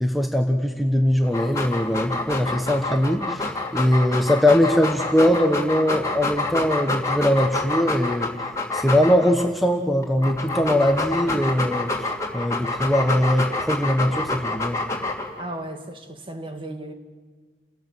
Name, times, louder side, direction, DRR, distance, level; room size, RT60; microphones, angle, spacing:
voice 1, 0.0-8.3 8.7-12.1 12.3-14.8, left 1 dB, ahead, 1.2 m, -21 dB
Dog, 1.2-9.5 10.0-15.4, left 2 dB, 15° left, 2.7 m, -27 dB
voice 2, 15.4-16.9, right 1 dB, 30° right, 1.9 m, -35 dB
29.5 x 17.0 x 7.8 m
head